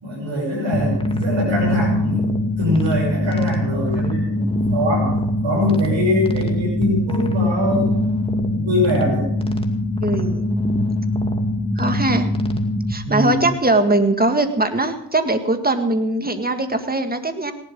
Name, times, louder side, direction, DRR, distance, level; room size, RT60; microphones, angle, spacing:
voice 1, 0.0-2.3 2.6-7.9 8.5-9.3 13.0-13.5, left 1 dB, 70° right, -6 dB, 7.2 m, -22 dB
sound 1, 0.7-12.9, left 1 dB, 10° left, 2.1 m, -22 dB
voice 2, 10.0-10.5 11.8-12.3 12.9-17.5, right 2 dB, 20° right, 7 dB, 1.9 m, -20 dB
17.5 x 12.0 x 5.4 m, 0.80 s
cardioid pair, 65°, 45 cm